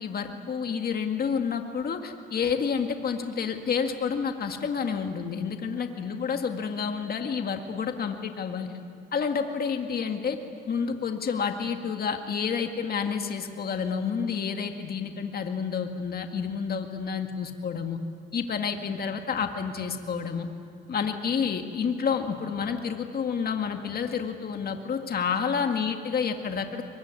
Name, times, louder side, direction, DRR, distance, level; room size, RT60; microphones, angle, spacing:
voice 1, 0.0-8.7 9.1-10.4 10.7-18.0 18.3-20.5 20.9-26.8, left 6 dB, 50° left, 5 dB, 1.9 m, -29 dB
23.0 x 22.0 x 9.7 m, 2.5 s
cardioid pair, 90°, 20 cm